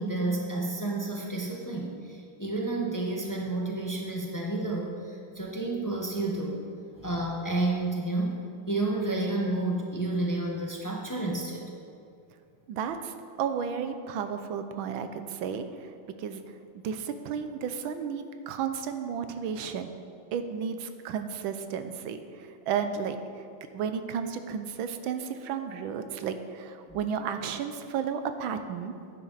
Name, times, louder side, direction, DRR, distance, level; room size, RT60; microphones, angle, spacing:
voice 1, 0.0-6.6 7.0-8.4 8.7-11.6 26.9-27.0, right 2 dB, 15° left, -1 dB, 0.6 m, -30 dB
voice 2, 12.7-16.4 16.7-19.9 20.3-23.4 23.7-28.9, right 7 dB, 75° right, 8 dB, 1.4 m, -33 dB
11.0 x 10.0 x 4.0 m, 2.4 s
omnidirectional pair, 2.3 m